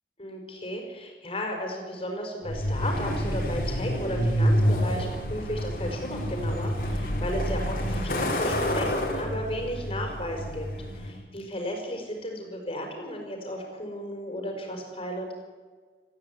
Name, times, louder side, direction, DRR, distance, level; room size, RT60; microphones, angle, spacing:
voice 1, 0.2-15.3, equal, 30° left, 2 dB, 5.4 m, -34 dB
Truck, 2.4-11.2, equal, 50° left, 3.9 m, -28 dB
19.0 x 15.0 x 9.7 m, 1.5 s
head